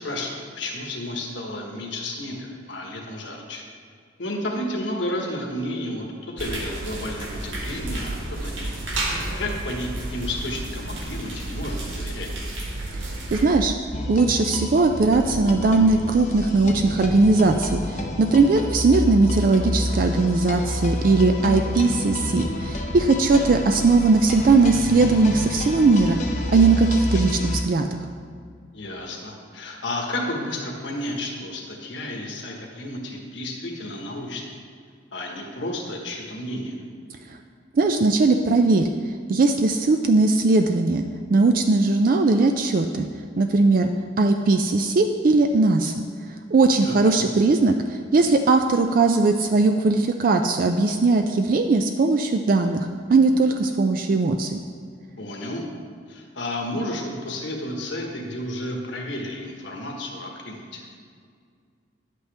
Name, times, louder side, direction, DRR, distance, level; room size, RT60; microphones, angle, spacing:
voice 1, 0.0-3.6 4.2-8.7 9.0-12.3 28.7-34.5 35.1-36.7 46.8-47.3 55.2-55.6 56.1-60.8, left 1 dB, 75° left, 0 dB, 1.4 m, -32 dB
sound 1, 6.4-13.4, right 1 dB, 80° right, 1.7 m, -31 dB
voice 2, 12.9-13.7 14.1-26.2 26.5-28.0 37.7-38.9 39.3-41.0 41.3-43.1 43.4-43.9 44.2-46.0 46.5-54.6, right 3 dB, 45° right, 5 dB, 0.4 m, -19 dB
sound 2, 13.9-27.6, left 1 dB, 40° left, 0.6 m, -29 dB
11.0 x 8.2 x 3.4 m, 2.2 s
head